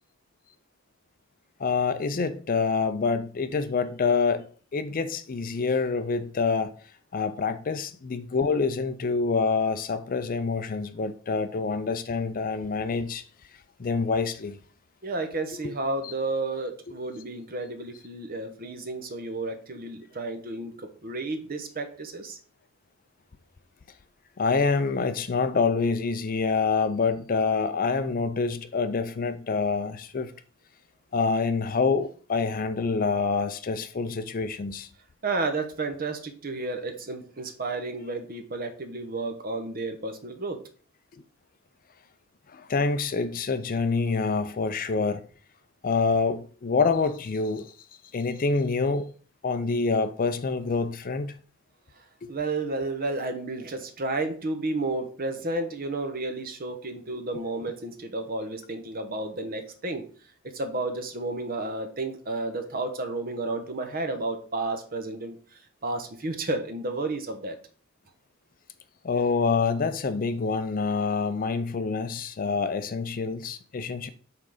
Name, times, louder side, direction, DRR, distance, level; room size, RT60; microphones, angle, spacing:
voice 1, 1.6-6.7 7.1-13.2 13.8-14.6 16.0-16.1 24.4-30.3 31.1-34.9 42.5-45.2 45.8-47.7 48.1-49.1 49.4-51.3 52.2-52.3 69.0-74.1, left 4 dB, 40° left, 0.4 m, -26 dB
voice 2, 15.0-22.4 35.2-40.6 51.9-60.0 60.5-67.6, right 2 dB, 40° right, 0.9 m, -32 dB
5.7 x 3.8 x 4.9 m
head